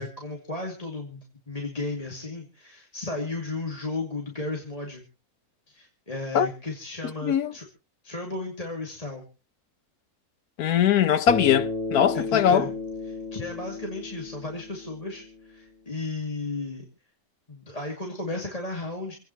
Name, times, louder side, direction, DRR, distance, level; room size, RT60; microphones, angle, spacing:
voice 1, 0.0-5.0 5.7-7.7 8.0-9.2 12.1-12.7 13.1-16.8 17.5-19.2, left 2 dB, 25° left, 2.5 m, -34 dB
voice 2, 7.2-7.5 10.6-12.7, left 9 dB, 90° left, 1.4 m, -21 dB
Bass guitar, 11.3-15.6, left 3 dB, ahead, 5.1 m, -33 dB
27.5 x 9.2 x 2.9 m
omnidirectional pair, 1.5 m